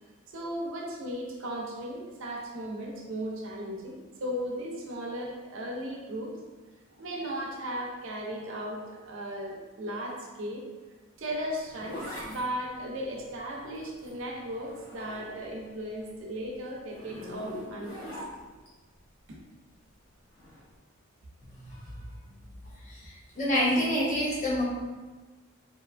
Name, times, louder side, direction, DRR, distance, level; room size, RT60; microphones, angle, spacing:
voice 1, 0.3-6.3 6.9-10.7 11.2-18.1, equal, 60° right, -2 dB, 0.5 m, -36 dB
Zipper (clothing), 11.2-15.7 16.0-18.7 20.3-20.6, left 1 dB, 70° left, 1.2 m, -43 dB
voice 2, 23.0-24.6, equal, 35° left, -7 dB, 0.8 m, -27 dB
2.7 x 2.3 x 2.4 m, 1.3 s
head